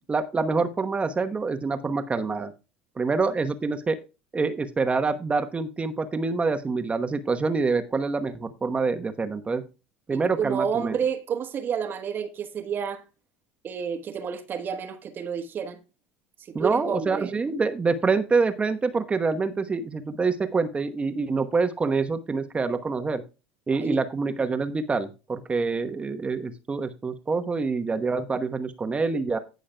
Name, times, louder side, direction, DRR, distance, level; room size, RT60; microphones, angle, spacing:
voice 1, 0.1-2.5 3.0-4.0 4.3-9.6 10.1-11.0 16.5-23.2 23.7-29.4, right 4 dB, 20° right, 1.1 m, -26 dB
voice 2, 10.1-13.0 13.6-15.8 16.6-17.3 23.8-24.0, right 7 dB, 40° right, 1.3 m, -30 dB
18.5 x 6.3 x 2.3 m
hypercardioid pair, 75°, 5 cm